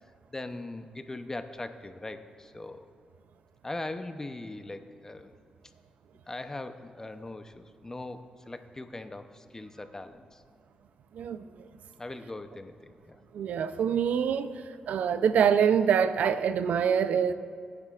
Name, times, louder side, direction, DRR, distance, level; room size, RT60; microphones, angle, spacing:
voice 1, 0.3-2.9 3.6-5.3 6.3-10.4 12.0-13.2, left 2 dB, 20° left, 8 dB, 0.7 m, -40 dB
voice 2, 13.3-14.5 14.9-17.3, right 7 dB, 90° right, 12 dB, 0.5 m, -25 dB
22.0 x 9.8 x 2.5 m, 2.3 s
cardioid pair, 90°, 3 cm